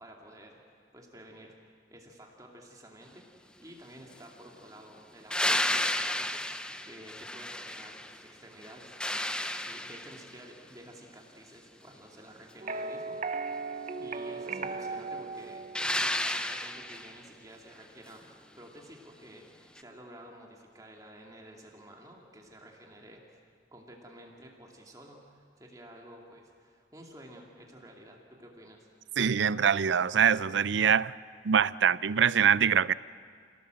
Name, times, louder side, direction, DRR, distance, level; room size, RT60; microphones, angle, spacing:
voice 1, 0.0-1.6 1.9-3.2 3.6-9.2 9.6-13.6 14.0-23.4 23.7-28.9, right 1 dB, 20° right, 2.3 m, -51 dB
sound 1, 5.3-8.2 8.6-10.4 15.7-17.2 19.8-19.9, left 1 dB, 5° left, 0.6 m, -32 dB
sound 2, 12.6-16.7, right 4 dB, 40° right, 0.8 m, -37 dB
voice 2, 29.2-31.1 31.4-32.9, right 7 dB, 80° right, 0.5 m, -24 dB
28.0 x 17.5 x 7.7 m
head